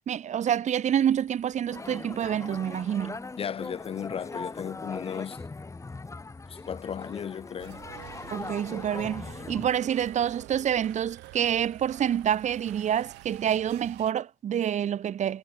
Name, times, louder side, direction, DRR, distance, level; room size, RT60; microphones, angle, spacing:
voice 1, 0.1-3.2 8.3-15.4, right 9 dB, 45° right, 1.0 m, -27 dB
sound 1, 0.9-13.8, left 17 dB, 80° left, 7.2 m, -65 dB
sound 2, 1.7-9.7, left 3 dB, 15° left, 2.6 m, -40 dB
voice 2, 3.4-5.4 6.5-7.8, left 8 dB, 35° left, 0.5 m, -35 dB
sound 3, 7.6-14.1, right 21 dB, 90° right, 1.9 m, -47 dB
cardioid pair, 110°, 17 cm